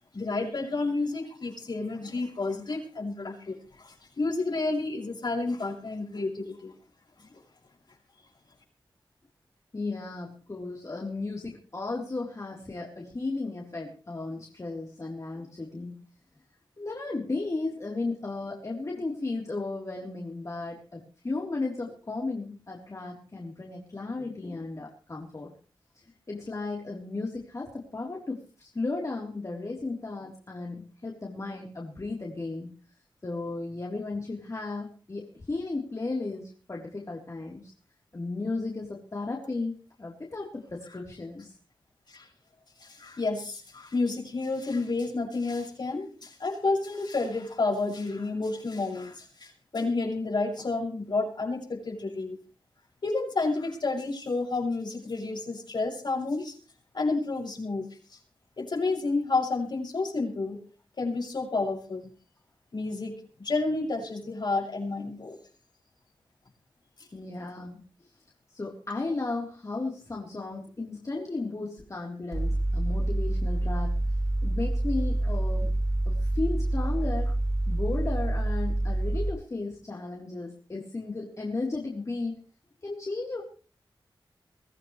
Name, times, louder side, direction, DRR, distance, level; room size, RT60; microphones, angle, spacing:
voice 1, 0.1-6.7 42.1-42.3 42.8-52.4 53.0-56.5 56.9-57.9 58.6-60.6 61.0-62.1 62.7-65.4, left 3 dB, 60° left, 0 dB, 6.8 m, -30 dB
voice 2, 9.7-16.0 16.8-25.5 26.3-32.7 33.2-37.7 38.1-41.5 67.1-68.1 68.5-74.0 74.4-75.7 76.1-77.4 77.7-82.4 82.8-83.4, left 3 dB, 40° left, -2 dB, 3.8 m, -35 dB
Mechanical fan, 72.3-79.3, right 1 dB, 45° right, 5.5 m, -27 dB
23.0 x 15.0 x 3.3 m, 0.38 s
wide cardioid pair, 70°, 8 cm